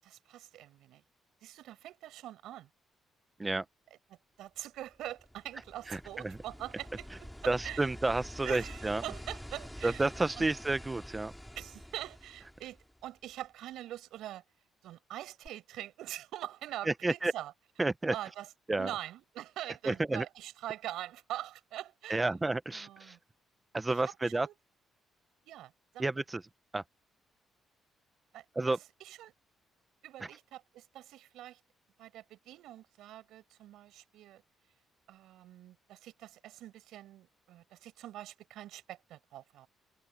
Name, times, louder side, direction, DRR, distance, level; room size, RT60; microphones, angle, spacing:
voice 1, 0.0-1.0 1.4-2.7 4.4-7.9 8.4-10.1 10.4-10.5 11.6-14.4 14.8-17.5 18.1-18.5 18.8-22.3 22.7-23.2 23.9-24.5 25.4-26.0 28.3-28.8 29.0-29.3 30.0-31.6 32.0-34.4 35.1-39.7, right 13 dB, 85° right, 6.9 m, -44 dB
sound 1, 4.8-13.3 15.5-15.6, equal, 5° left, 3.3 m, -47 dB
voice 2, 5.9-6.4 7.5-9.0 9.8-11.3 16.9-17.3 17.8-18.1 18.7-18.9 19.8-20.2 22.1-23.2 23.7-24.5 26.0-26.4 26.7-26.8 28.6-28.8, right 2 dB, 20° right, 0.8 m, -30 dB
cardioid pair, 90°, 0 cm